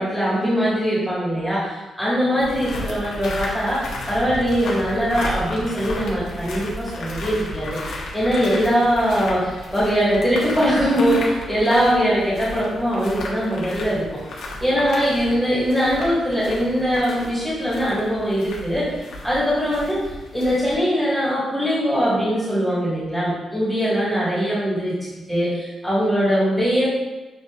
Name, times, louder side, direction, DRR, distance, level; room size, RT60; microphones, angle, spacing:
voice 1, 0.0-14.0 14.6-18.8 19.2-20.0 20.3-26.9, equal, ahead, -9 dB, 1.3 m, -21 dB
sound 1, 2.4-20.8, left 1 dB, 85° left, 0.7 m, -34 dB
6.3 x 2.5 x 2.3 m, 1.1 s
cardioid pair, 100°, 0 cm